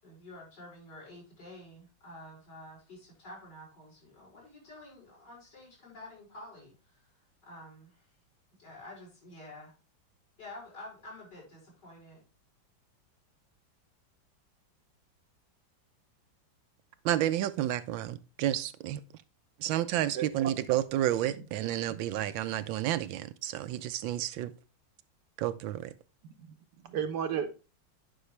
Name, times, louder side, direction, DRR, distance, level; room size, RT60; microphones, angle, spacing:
voice 1, 0.0-7.0 7.4-8.1 8.6-9.7 10.4-12.2, left 1 dB, 60° left, 6.1 m, -49 dB
voice 2, 17.0-19.0 19.6-24.5 25.4-25.9, right 13 dB, 85° right, 1.4 m, -31 dB
voice 3, 20.1-20.5 21.9-22.0 26.4-26.5 26.8-27.6, right 8 dB, 70° right, 1.3 m, -34 dB
10.0 x 5.4 x 3.2 m
omnidirectional pair, 2.1 m